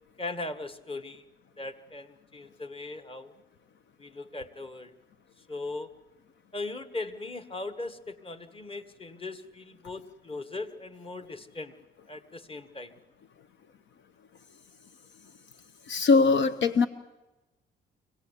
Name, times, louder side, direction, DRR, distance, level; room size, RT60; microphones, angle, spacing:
voice 1, 0.2-1.2 1.6-3.3 4.0-4.9 5.5-5.9 6.5-11.8 12.1-13.0, left 2 dB, 25° left, 12 dB, 1.7 m, -39 dB
voice 2, 15.9-16.9, left 4 dB, 70° left, 12 dB, 0.9 m, -21 dB
25.0 x 18.0 x 8.2 m, 1.0 s
cardioid pair, 90°, 20 cm